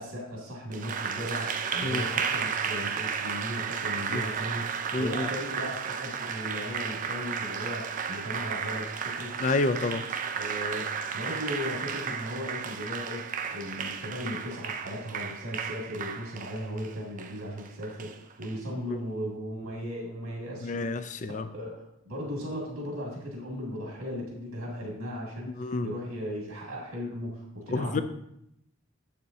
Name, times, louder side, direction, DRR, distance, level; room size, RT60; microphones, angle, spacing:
voice 1, 0.0-9.4 10.4-10.9 11.1-28.0, equal, 85° right, -2 dB, 2.3 m, -37 dB
Applause, 0.7-18.5, right 6 dB, 40° right, 0.4 m, -33 dB
voice 2, 4.9-5.3 9.4-10.0 18.9-19.0 20.6-21.5 25.6-25.9 27.7-28.0, left 3 dB, 35° left, 10 dB, 0.4 m, -29 dB
7.5 x 6.8 x 2.7 m, 0.76 s
head